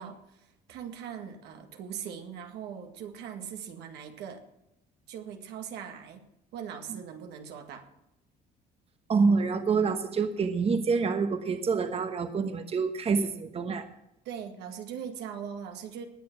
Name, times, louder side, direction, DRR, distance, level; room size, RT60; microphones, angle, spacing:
voice 1, 0.0-4.4 5.1-6.2 6.5-7.9 14.3-16.1, right 8 dB, 85° right, 5 dB, 1.9 m, -40 dB
voice 2, 9.1-13.9, right 5 dB, 35° right, 8 dB, 1.2 m, -27 dB
19.5 x 6.9 x 6.1 m, 0.85 s
cardioid pair, 110°, 17 cm